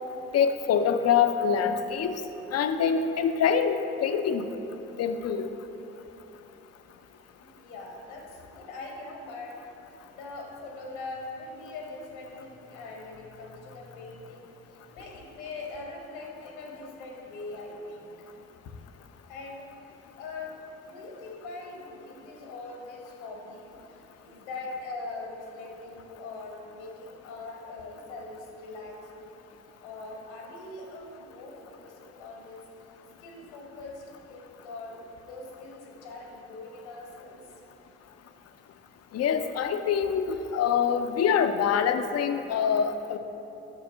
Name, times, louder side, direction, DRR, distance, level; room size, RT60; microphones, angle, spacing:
voice 1, 0.3-2.1 2.5-4.4 5.0-5.5 39.1-43.2, left 7 dB, 45° left, 8 dB, 0.6 m, -25 dB
voice 2, 7.4-9.6 10.1-18.1 19.3-19.7 20.1-29.4 29.8-32.9 33.2-37.4, left 3 dB, 80° left, 0 dB, 1.3 m, -42 dB
6.8 x 6.3 x 5.5 m, 3.0 s
hypercardioid pair, 45°, 34 cm